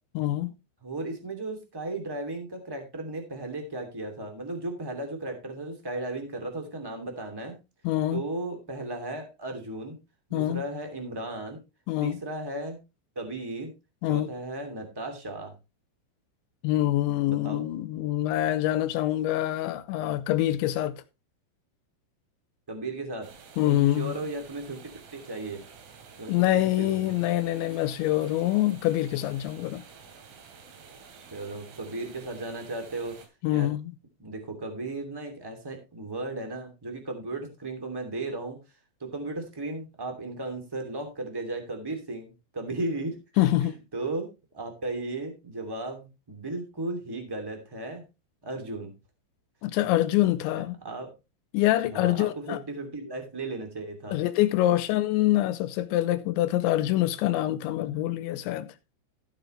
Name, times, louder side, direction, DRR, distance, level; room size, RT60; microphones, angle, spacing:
voice 1, 0.2-0.5 7.8-8.2 10.3-10.6 11.9-12.2 14.0-14.3 16.6-21.0 23.6-24.2 26.3-29.8 33.4-33.9 43.4-43.8 49.6-50.8 51.5-52.6 54.1-58.7, left 14 dB, 80° left, 3.0 m, -25 dB
voice 2, 0.8-7.6 8.1-10.0 10.3-11.6 12.0-12.8 13.1-13.7 14.1-15.5 17.3-17.6 22.7-23.3 23.6-24.8 25.1-25.6 26.2-27.2 31.1-33.2 33.5-33.7 34.2-38.6 39.0-43.4 43.9-44.3 44.5-48.0 48.4-48.9 49.9-50.0 50.8-51.1 51.8-54.2 54.7-54.8, right 2 dB, 10° right, 1.0 m, -35 dB
sound 1, 23.2-33.3, right 6 dB, 85° right, 5.0 m, -50 dB
14.5 x 7.9 x 3.2 m
omnidirectional pair, 5.7 m